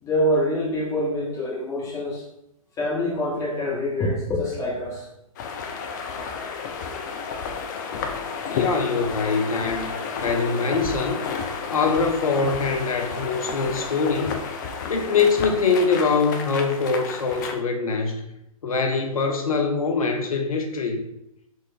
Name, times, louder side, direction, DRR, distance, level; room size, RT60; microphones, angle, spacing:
voice 1, 0.0-2.2 2.8-5.1, left 1 dB, 15° left, -5 dB, 1.1 m, -25 dB
sound 1, 5.4-17.6, left 5 dB, 30° left, 0.4 m, -31 dB
voice 2, 8.5-11.2 11.7-14.4 14.9-18.2 18.6-21.0, left 4 dB, 70° left, 3 dB, 0.7 m, -23 dB
3.9 x 2.4 x 2.8 m, 0.83 s
figure-of-eight pair, 120°, 19 cm